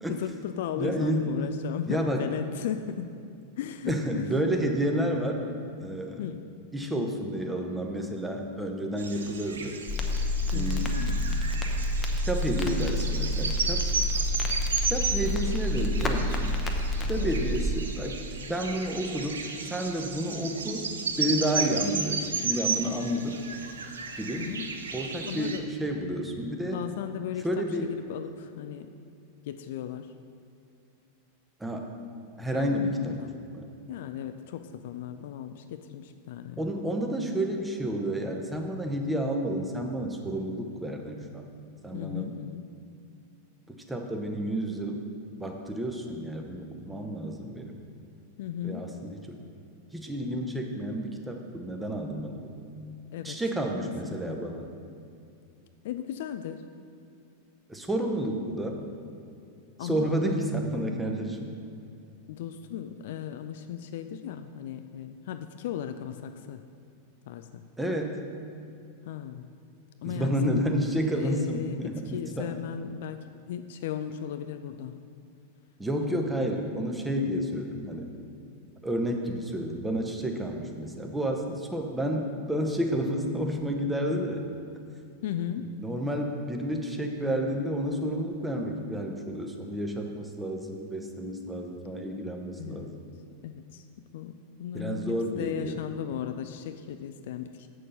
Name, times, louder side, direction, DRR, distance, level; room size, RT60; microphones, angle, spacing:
voice 1, 0.1-3.2 3.6-4.3 6.2-6.5 10.5-11.5 17.2-17.6 24.4-24.7 25.2-25.7 26.7-28.9 29.4-30.1 32.5-33.4 33.9-36.7 41.9-42.7 48.4-48.9 53.1-53.4 54.0-54.4 55.8-56.6 59.8-60.6 62.3-66.7 67.3-67.7 69.0-69.5 70.0-75.0 85.2-85.8 92.6-93.0 93.4-93.8 94.1-97.7, left 9 dB, 55° left, 9 dB, 0.3 m, -36 dB
voice 2, 0.8-1.3 1.9-2.2 3.8-5.4 5.8-6.2 6.7-9.8 10.5-11.2 12.3-13.8 14.9-16.4 17.1-18.2 18.5-20.9 21.2-23.4 24.2-24.5 24.9-26.8 27.4-27.9 31.6-31.8 32.4-33.2 33.5-33.6 36.6-41.5 41.8-42.3 43.9-45.0 45.4-47.7 48.6-49.4 49.9-52.6 53.2-54.7 57.7-58.8 59.8-61.5 67.8-68.2 70.0-72.5 75.8-78.1 78.8-84.5 85.6-92.9 94.7-95.8, right 1 dB, 5° right, 2 dB, 1.0 m, -30 dB
sound 1, 9.0-25.6, right 4 dB, 70° right, 0.7 m, -34 dB
Crackle, 9.9-17.7, left 1 dB, 20° left, 0.8 m, -28 dB
7.5 x 6.6 x 5.4 m, 2.5 s
figure-of-eight pair, 90°, 0 cm